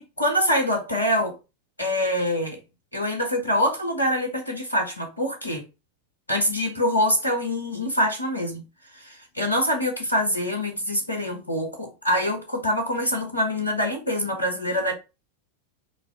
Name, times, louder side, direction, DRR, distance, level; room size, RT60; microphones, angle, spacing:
voice 1, 0.0-1.3 1.8-2.6 2.9-5.6 6.3-8.6 9.0-14.9, equal, 80° left, 1.1 m, -25 dB
3.9 x 2.6 x 4.7 m
figure-of-eight pair, 90°, 0 cm